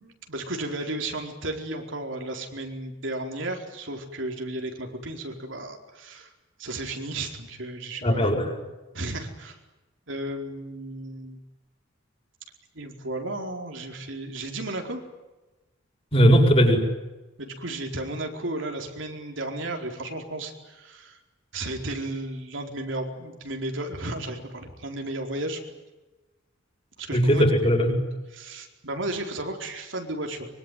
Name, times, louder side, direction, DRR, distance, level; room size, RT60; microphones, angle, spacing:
voice 1, 0.0-6.3 6.6-8.3 8.9-9.6 10.1-11.4 12.7-15.0 17.4-21.2 21.5-25.6 27.0-27.5 28.3-30.5, right 2 dB, 70° right, 3 dB, 4.6 m, -34 dB
voice 2, 8.0-8.5 16.1-16.8 27.1-28.0, equal, 30° left, 2 dB, 7.2 m, -19 dB
24.5 x 24.0 x 9.4 m, 1.1 s
head